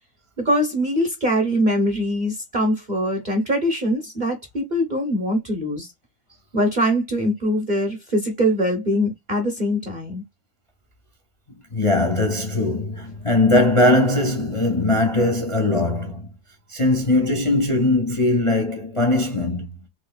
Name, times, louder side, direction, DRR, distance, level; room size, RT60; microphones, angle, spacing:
voice 1, 0.4-5.9 6.5-10.2, equal, 40° right, 0.6 m, -22 dB
voice 2, 11.7-16.3 16.7-19.7, left 2 dB, 40° left, 0.4 m, -20 dB
4.2 x 2.7 x 2.3 m
omnidirectional pair, 2.1 m